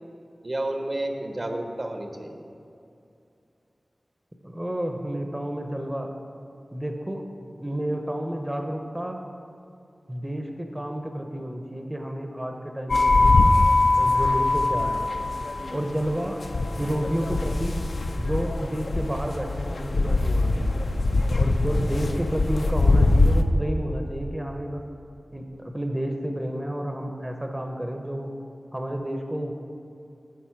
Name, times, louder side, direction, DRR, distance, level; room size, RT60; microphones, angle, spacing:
voice 1, 0.4-2.4, right 1 dB, 50° right, 4 dB, 0.7 m, -31 dB
voice 2, 4.4-6.1 6.7-7.2 7.5-9.2 10.1-13.5 14.0-15.1 15.7-16.4 16.7-17.8 18.2-20.8 21.3-24.8 25.3-28.3 28.7-29.5, right 1 dB, 15° right, 3 dB, 0.6 m, -30 dB
sound 1, 12.9-23.4, left 2 dB, 80° left, 0.4 m, -22 dB
9.3 x 4.1 x 5.8 m, 2.6 s
wide cardioid pair, 60°, 0 cm